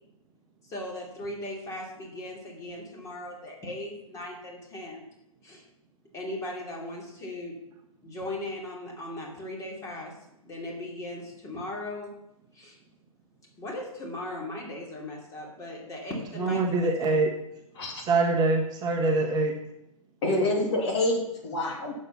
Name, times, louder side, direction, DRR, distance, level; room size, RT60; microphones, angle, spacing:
voice 1, 0.6-5.0 5.4-5.6 6.1-7.6 8.0-10.1 10.4-12.1 12.5-12.8 13.6-17.1, left 1 dB, 15° left, -1 dB, 2.8 m, -38 dB
voice 2, 16.4-17.3 18.0-19.5, right 3 dB, 20° right, 1 dB, 1.2 m, -24 dB
voice 3, 20.2-21.9, left 1 dB, 50° left, 0 dB, 2.8 m, -27 dB
8.9 x 7.5 x 5.6 m, 0.83 s
figure-of-eight pair, 120°, 18 cm